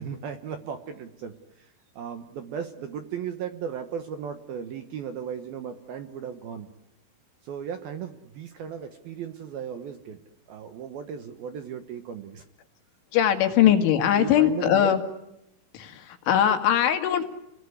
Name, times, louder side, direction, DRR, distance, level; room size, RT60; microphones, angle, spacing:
voice 1, 0.0-6.7 7.4-10.2 10.5-12.4 13.6-13.7 14.2-15.0, right 7 dB, 70° right, 7 dB, 2.5 m, -36 dB
voice 2, 13.1-15.0 15.7-17.2, left 10 dB, 75° left, 7 dB, 4.3 m, -21 dB
29.5 x 20.5 x 9.5 m, 0.87 s
omnidirectional pair, 5.7 m